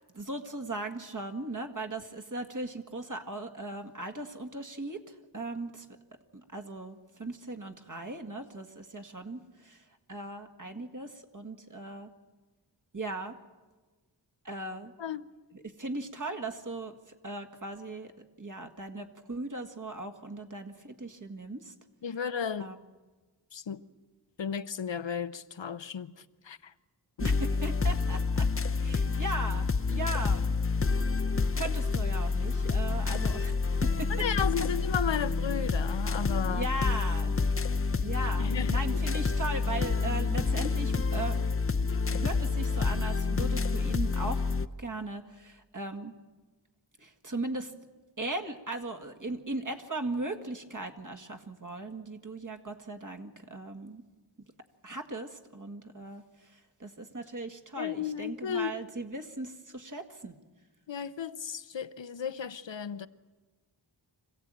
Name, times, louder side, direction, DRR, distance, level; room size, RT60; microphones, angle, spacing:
voice 1, 0.0-5.9 6.3-12.1 12.9-13.4 14.4-14.9 15.5-16.9 17.2-18.1 18.4-21.7 22.6-22.8 27.2-28.5 28.8-30.5 31.3-34.1 36.5-37.3 38.0-41.5 41.9-44.4 44.8-46.1 47.0-47.7 48.2-54.0 54.8-60.4, right 2 dB, 45° right, 1.9 m, -38 dB
voice 2, 22.0-22.7 23.5-23.8 24.4-26.7 34.1-36.7 38.4-39.0 57.8-58.7 60.9-63.1, left 7 dB, 85° left, 0.8 m, -34 dB
sound 1, 27.2-44.7, left 4 dB, 30° left, 0.6 m, -28 dB
25.5 x 16.0 x 9.0 m
wide cardioid pair, 55°, 43 cm